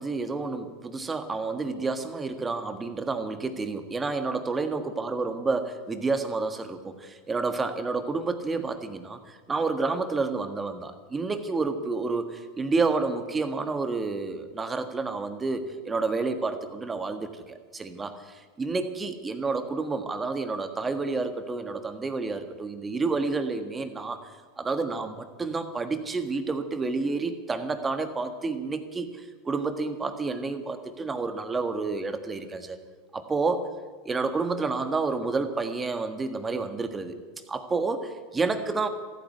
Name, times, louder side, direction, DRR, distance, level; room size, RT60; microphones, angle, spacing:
voice 1, 0.0-32.8 33.1-33.7 34.0-37.2 37.5-38.9, right 3 dB, 15° right, 8 dB, 1.5 m, -30 dB
14.5 x 9.0 x 9.5 m, 1.5 s
supercardioid pair, 115°, 0 cm